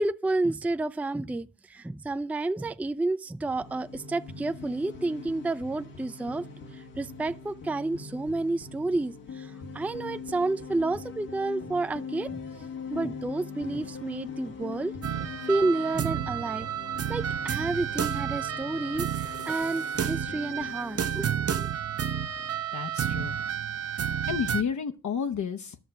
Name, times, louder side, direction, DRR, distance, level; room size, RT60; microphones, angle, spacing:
voice 1, 0.0-6.4 6.7-12.4 12.9-14.9 15.2-16.7 17.1-21.7, right 2 dB, 5° right, 0.4 m, -30 dB
sound 1, 3.5-21.3, left 5 dB, 80° left, 1.4 m, -42 dB
sound 2, 15.0-24.6, right 9 dB, 45° right, 0.8 m, -31 dB
voice 2, 22.7-23.4 24.3-25.8, left 7 dB, 60° left, 0.8 m, -31 dB
11.5 x 6.4 x 5.9 m
supercardioid pair, 50°, 33 cm